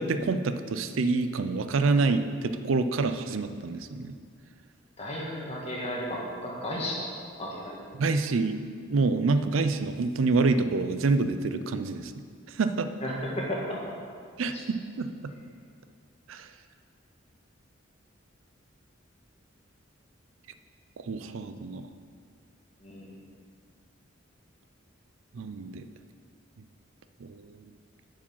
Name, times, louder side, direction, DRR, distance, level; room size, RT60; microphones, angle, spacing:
voice 1, 0.0-4.2 7.9-8.6 8.9-12.1 12.5-12.9 14.4-15.1 16.3-16.5 21.0-21.9 25.3-25.9 27.2-27.7, right 3 dB, 85° right, 10 dB, 0.5 m, -27 dB
voice 2, 5.0-7.0 7.4-7.8 13.0-13.8 22.8-23.1, equal, 30° left, -3 dB, 1.5 m, -33 dB
8.8 x 4.9 x 5.6 m, 2.2 s
head